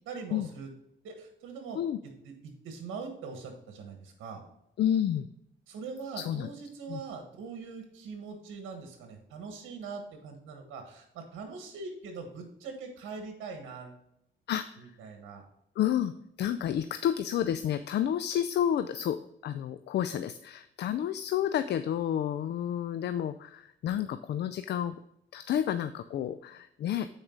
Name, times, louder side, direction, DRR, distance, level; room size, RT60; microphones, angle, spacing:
voice 1, 0.1-0.7 1.0-4.4 5.7-14.0 14.8-15.4, right 4 dB, 85° right, 4 dB, 1.4 m, -42 dB
voice 2, 4.8-5.3 6.2-6.5 6.9-7.0 14.5-14.7 15.8-25.0 25.3-27.1, left 10 dB, 60° left, 11 dB, 0.4 m, -30 dB
8.8 x 4.7 x 3.8 m, 0.80 s
cardioid pair, 90°, 20 cm